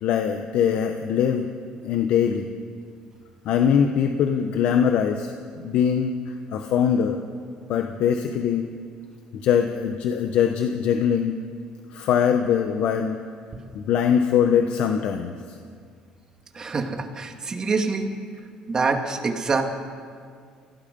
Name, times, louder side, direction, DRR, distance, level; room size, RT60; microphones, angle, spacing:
voice 1, 0.0-1.5 1.8-2.5 3.5-5.3 5.6-6.2 6.5-7.2 7.7-8.7 9.4-11.4 11.9-13.2 13.7-15.3, left 8 dB, 70° left, 5 dB, 1.2 m, -22 dB
voice 2, 16.6-18.1 18.7-19.6, right 4 dB, 30° right, 3 dB, 2.5 m, -25 dB
28.0 x 17.5 x 5.5 m, 2.1 s
cardioid pair, 110°, 2 cm